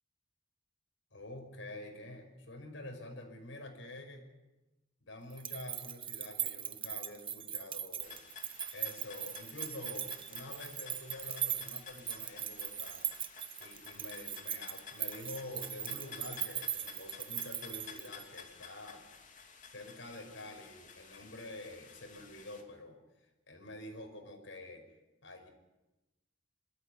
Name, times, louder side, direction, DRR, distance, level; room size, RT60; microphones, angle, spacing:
voice 1, 1.1-4.2 5.0-8.2 8.7-13.0 13.6-19.0 19.7-24.8 25.2-25.5, left 1 dB, 80° left, 4 dB, 5.7 m, -47 dB
sound 1, 5.3-18.4, right 10 dB, 30° right, 0.8 m, -40 dB
sound 2, 8.0-22.6, left 6 dB, 45° left, 2.9 m, -52 dB
26.0 x 14.0 x 9.5 m, 1.1 s
head